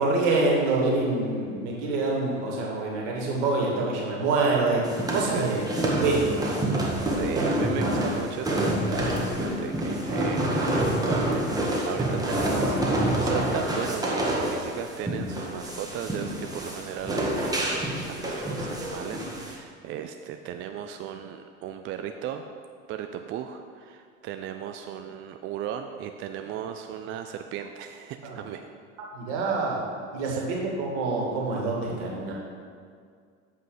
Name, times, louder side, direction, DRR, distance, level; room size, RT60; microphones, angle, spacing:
voice 1, 0.0-4.8 5.1-5.6 6.0-6.7 28.2-28.4 29.1-29.8 30.1-32.3, right 3 dB, 60° right, -2 dB, 2.2 m, -26 dB
sound 1, 4.8-19.5, right 1 dB, 10° right, 1.6 m, -27 dB
voice 2, 5.1-5.6 7.1-11.5 11.9-22.4 22.9-28.7 30.3-30.4, right 9 dB, 35° right, 6 dB, 0.4 m, -36 dB
8.0 x 5.5 x 4.9 m, 2.1 s
hypercardioid pair, 80°, 38 cm